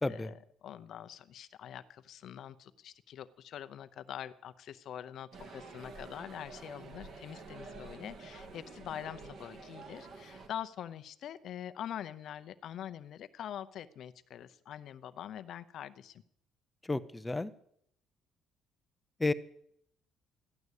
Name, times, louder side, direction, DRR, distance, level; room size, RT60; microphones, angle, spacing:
voice 1, 0.0-16.2, left 10 dB, 55° left, 12 dB, 0.7 m, -44 dB
sound 1, 5.3-10.5, right 3 dB, 50° right, 2.2 m, -49 dB
voice 2, 16.9-17.5 19.2-19.3, left 2 dB, 10° left, 13 dB, 0.6 m, -31 dB
14.0 x 11.0 x 8.2 m, 0.70 s
cardioid pair, 140°, 0 cm